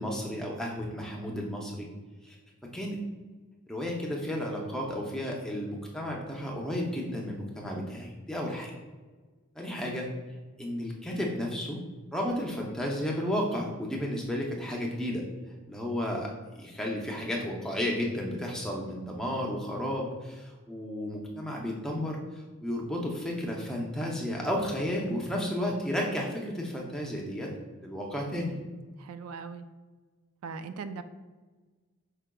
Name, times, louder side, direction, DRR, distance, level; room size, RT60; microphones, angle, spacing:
voice 1, 0.0-1.9 2.2-2.4 2.7-3.0 3.7-8.7 9.6-10.1 10.6-11.8 12.1-15.3 15.7-16.3 16.6-22.2 22.6-27.5 27.8-28.6, equal, 5° left, -2 dB, 0.5 m, -32 dB
voice 2, 29.0-29.7 30.4-31.0, right 5 dB, 85° right, 10 dB, 0.3 m, -39 dB
4.7 x 4.5 x 2.2 m, 1.3 s
head